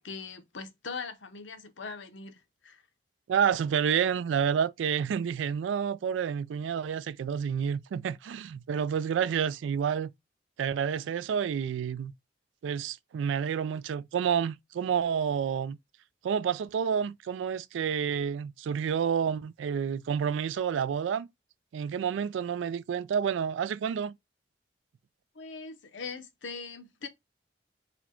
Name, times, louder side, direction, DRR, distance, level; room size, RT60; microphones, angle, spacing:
voice 1, 0.0-2.8 25.3-27.1, left 4 dB, 85° left, 0.8 m, -41 dB
voice 2, 3.3-10.1 10.6-12.1 12.6-15.8 16.2-21.3 21.7-24.1, right 7 dB, 85° right, 0.3 m, -29 dB
4.2 x 2.2 x 4.3 m
head